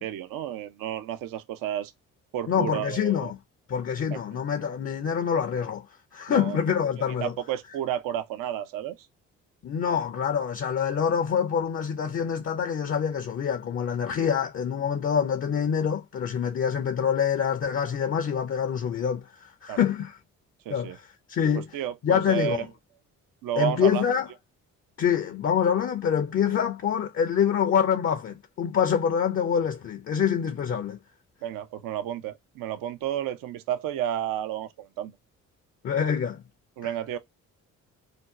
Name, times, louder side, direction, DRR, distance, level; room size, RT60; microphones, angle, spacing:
voice 1, 0.0-1.9 2.3-3.3 4.1-4.2 6.3-6.6 7.2-9.0 19.7-19.8 20.7-21.0 21.7-22.7 23.4-24.0 31.4-35.1 36.8-37.2, right 11 dB, 65° right, 0.6 m, -31 dB
voice 2, 2.5-3.4 3.7-5.9 6.1-7.3 9.6-20.2 20.7-21.7 22.0-22.7 23.6-24.3 25.0-31.0 35.8-36.4 36.8-36.9, left 7 dB, 35° left, 0.5 m, -26 dB
2.6 x 2.1 x 3.6 m
hypercardioid pair, 50°, 36 cm